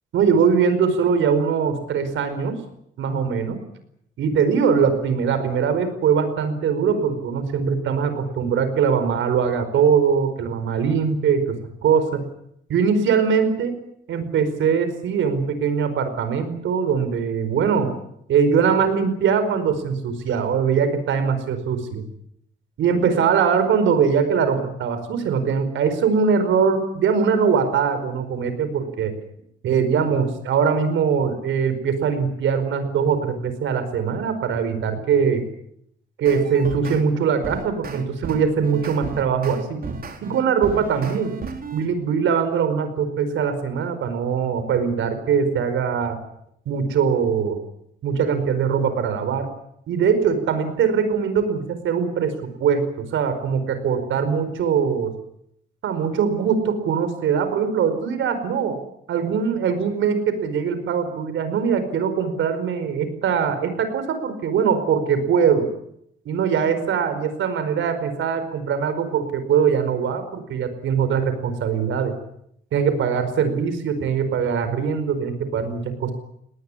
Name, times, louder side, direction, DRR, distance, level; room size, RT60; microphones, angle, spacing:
voice 1, 0.1-2.6 3.0-3.6 4.2-11.6 11.8-12.2 12.7-13.8 14.1-17.9 18.3-22.0 22.8-29.1 29.6-35.4 36.2-39.8 40.2-41.3 41.7-46.2 46.6-47.6 48.0-49.5 49.9-55.1 55.8-58.8 59.1-65.7 66.2-72.1 72.7-76.1, right 6 dB, 75° right, 10 dB, 5.0 m, -21 dB
sound 1, 36.2-37.0 37.4-41.9, right 4 dB, 50° right, 4.3 m, -34 dB
20.5 x 19.0 x 9.9 m, 0.73 s
cardioid pair, 90°, 20 cm